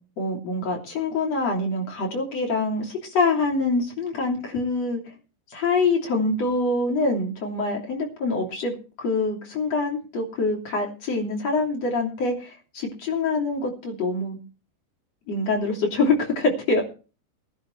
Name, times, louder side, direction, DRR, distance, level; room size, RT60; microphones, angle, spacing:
voice 1, 0.2-5.0 5.5-14.4 15.3-16.8, left 3 dB, 40° left, 0 dB, 3.7 m, -25 dB
21.5 x 10.5 x 3.3 m, 0.35 s
omnidirectional pair, 4.9 m